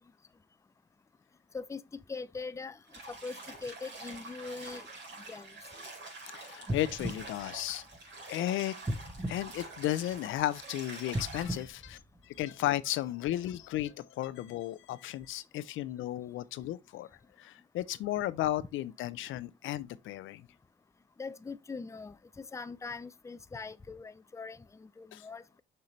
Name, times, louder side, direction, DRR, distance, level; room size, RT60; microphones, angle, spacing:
voice 1, 2.1-2.8 3.2-4.8 5.3-5.5 21.2-25.6, left 4 dB, 15° left, 0.5 m, -42 dB
Bathtub (filling or washing), 2.9-11.6, right 2 dB, 65° right, 4.4 m, -47 dB
voice 2, 6.3-7.8 8.3-8.7 9.3-12.0 12.4-17.1 17.4-20.4 25.1-25.2, left 14 dB, 80° left, 0.5 m, -34 dB
sound 1, 6.6-8.3 8.8-10.4 11.0-12.7 13.3-13.4, right 1 dB, 15° right, 1.2 m, -38 dB
6.6 x 5.6 x 3.1 m
cardioid pair, 90°, 20 cm